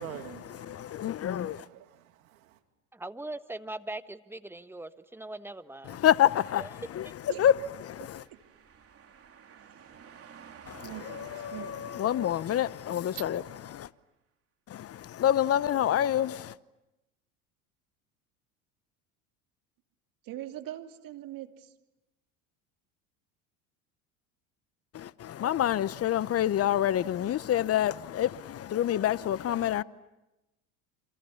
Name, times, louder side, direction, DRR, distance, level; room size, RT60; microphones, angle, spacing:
voice 1, 0.0-2.6, right 11 dB, 80° right, 2.7 m, -47 dB
voice 2, 0.5-1.7 5.8-7.6 7.9-8.2 10.6-13.4 13.7-13.9 14.7-16.6 24.9-29.8, left 11 dB, 35° left, 0.9 m, -28 dB
voice 3, 2.9-6.0 6.6-6.7, right 2 dB, 5° right, 1.4 m, -40 dB
sound 1, 7.1-13.8, right 7 dB, 35° right, 3.1 m, -53 dB
voice 4, 8.0-8.4 10.8-12.6 13.1-13.2 20.2-21.7, right 13 dB, 55° right, 2.8 m, -43 dB
29.5 x 27.0 x 7.1 m
hypercardioid pair, 85°, 41 cm